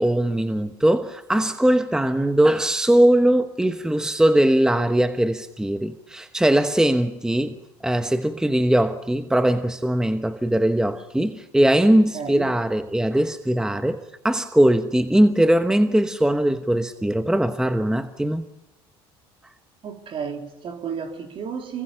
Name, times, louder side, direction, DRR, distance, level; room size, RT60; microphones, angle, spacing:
voice 1, 0.0-7.6 7.8-14.0 14.2-18.5, right 1 dB, 5° right, 1.0 m, -20 dB
voice 2, 12.1-12.5 19.8-21.8, right 6 dB, 50° right, 3.4 m, -32 dB
25.5 x 22.5 x 5.7 m
supercardioid pair, 90°, 12 cm